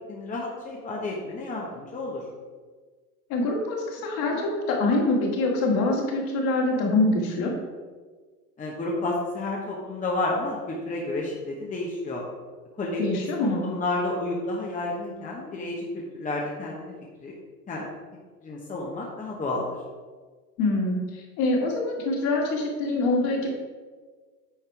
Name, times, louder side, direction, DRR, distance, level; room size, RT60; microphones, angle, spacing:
voice 1, 0.1-2.2 8.6-12.2 12.8-16.9 17.2-17.3 17.7-17.9 18.4-19.7, left 2 dB, 15° left, -2 dB, 1.1 m, -31 dB
voice 2, 3.3-7.5 13.0-13.7 20.6-23.5, left 2 dB, 45° left, -1 dB, 2.3 m, -25 dB
9.1 x 4.2 x 4.7 m, 1.4 s
hypercardioid pair, 110°, 48 cm